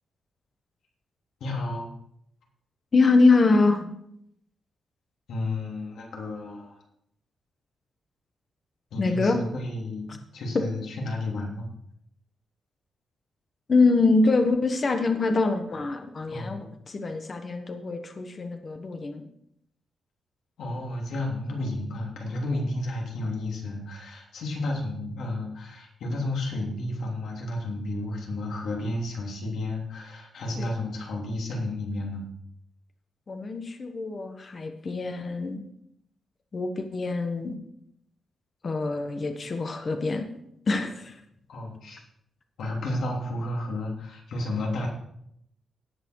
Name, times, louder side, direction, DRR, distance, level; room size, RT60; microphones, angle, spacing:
voice 1, 1.4-1.9 5.3-6.8 8.9-11.7 16.3-16.7 20.6-32.3 41.5-42.0 42.6-44.9, left 2 dB, 80° left, -1 dB, 3.3 m, -32 dB
voice 2, 2.9-3.9 9.0-9.4 13.7-19.2 30.6-30.7 33.3-35.6 36.5-37.6 38.6-40.3 40.7-41.1, left 3 dB, 30° left, 6 dB, 1.2 m, -24 dB
17.5 x 6.0 x 4.7 m, 0.75 s
wide cardioid pair, 165°, 0 cm